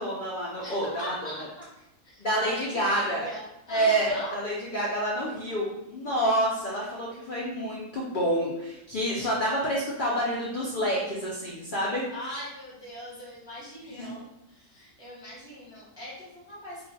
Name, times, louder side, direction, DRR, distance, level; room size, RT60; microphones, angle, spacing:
voice 1, 0.0-1.3 2.2-3.3 3.7-12.0 13.9-14.1, right 1 dB, 75° left, -5 dB, 0.4 m, -28 dB
voice 2, 0.6-1.7 2.0-4.3 12.1-16.9, left 1 dB, 5° right, -7 dB, 0.7 m, -40 dB
2.4 x 2.3 x 3.9 m, 0.87 s
omnidirectional pair, 1.6 m